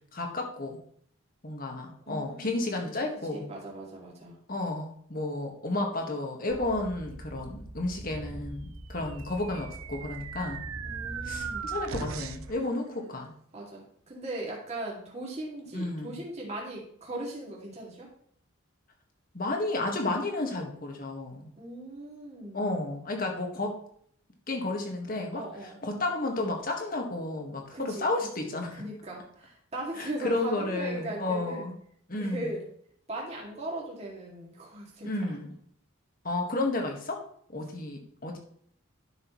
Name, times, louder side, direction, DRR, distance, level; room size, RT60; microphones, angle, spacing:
voice 1, 0.1-0.8 1.4-3.5 4.5-10.6 11.2-13.3 15.7-16.2 19.3-21.5 22.5-23.7 24.5-25.4 25.8-28.8 30.0-31.7 32.1-32.5 35.0-35.5 36.2-37.2 37.5-38.4, left 2 dB, 40° left, 2 dB, 1.7 m, -32 dB
voice 2, 2.0-2.9 3.3-4.3 10.8-11.8 13.5-18.1 21.6-22.7 25.3-25.8 27.7-28.1 28.4-31.7 32.2-32.6 33.1-35.1, right 1 dB, 30° right, -4 dB, 2.4 m, -39 dB
sound 1, 6.5-12.5, right 1 dB, 10° left, 1.7 m, -43 dB
sound 2, 9.0-12.6, right 7 dB, 85° right, 0.5 m, -39 dB
11.5 x 6.3 x 3.1 m, 0.62 s
head